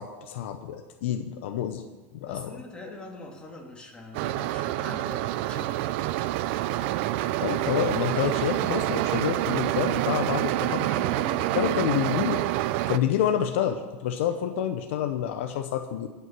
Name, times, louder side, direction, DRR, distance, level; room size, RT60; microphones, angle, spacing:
voice 1, 0.0-1.8 2.2-2.6 7.4-10.8 11.5-12.4 12.9-16.1, left 10 dB, 75° left, 7 dB, 0.9 m, -28 dB
voice 2, 2.3-5.8 10.6-11.8, left 1 dB, 15° left, 0 dB, 2.7 m, -42 dB
sound 1, 4.1-13.0, right 15 dB, 65° right, 0.5 m, -27 dB
16.5 x 5.9 x 7.6 m, 1.3 s
supercardioid pair, 110°, 7 cm